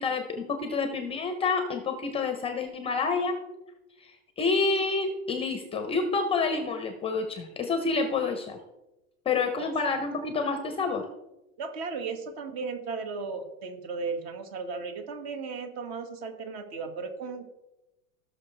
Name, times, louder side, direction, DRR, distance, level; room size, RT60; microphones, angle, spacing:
voice 1, 0.0-3.4 4.0-4.1 4.4-8.6 9.3-11.0, left 4 dB, 15° left, 7 dB, 0.6 m, -28 dB
voice 2, 11.6-17.5, right 4 dB, 50° right, 5 dB, 1.9 m, -35 dB
17.0 x 6.2 x 3.2 m, 0.98 s
supercardioid pair, 155°, 40 cm